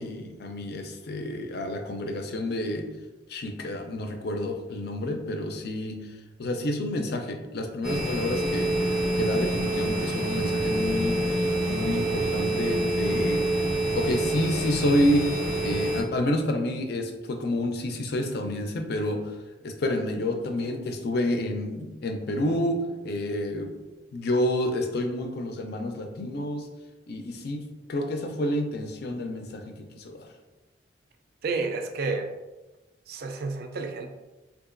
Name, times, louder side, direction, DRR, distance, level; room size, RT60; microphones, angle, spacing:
voice 1, 0.0-2.9 3.3-6.0 6.4-8.8 9.2-13.5 14.0-15.3 15.6-19.3 19.6-23.8 24.1-26.7 27.1-27.6 27.9-30.3, left 1 dB, 60° left, 4 dB, 0.4 m, -29 dB
sound 1, 7.8-16.0, right 1 dB, 5° right, 0.6 m, -26 dB
voice 2, 31.4-32.3 33.1-34.1, right 3 dB, 55° right, 5 dB, 0.4 m, -30 dB
3.7 x 2.5 x 2.5 m, 1.1 s
head